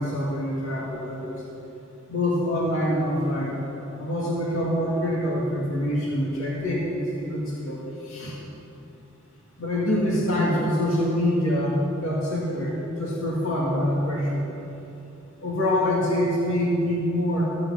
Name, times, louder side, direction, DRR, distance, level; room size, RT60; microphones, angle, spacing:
voice 1, 0.0-1.4 2.1-3.6 4.0-8.4 9.6-14.4 15.4-17.5, left 1 dB, 85° left, -5 dB, 2.3 m, -25 dB
14.0 x 7.5 x 7.1 m, 2.9 s
head